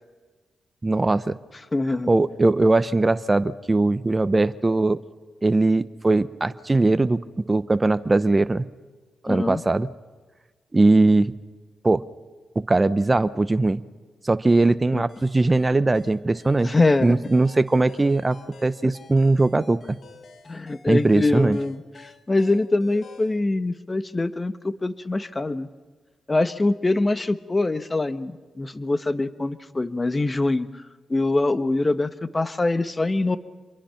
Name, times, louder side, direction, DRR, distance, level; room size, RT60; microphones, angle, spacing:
voice 1, 0.8-1.4 2.1-5.0 5.4-8.7 9.2-9.9 10.7-11.3 11.8-12.0 12.7-13.8 14.2-16.7 17.0-20.0 20.9-21.6, right 2 dB, 25° right, 13 dB, 0.9 m, -20 dB
voice 2, 1.7-2.1 9.3-9.6 14.9-15.1 16.6-17.2 18.8-18.9 20.5-25.7 26.3-30.8 31.1-33.4, left 2 dB, 30° left, 12 dB, 1.4 m, -24 dB
sound 1, 15.1-23.4, left 4 dB, 60° left, 2.5 m, -50 dB
27.0 x 23.0 x 5.9 m, 1.4 s
supercardioid pair, 50°, 0 cm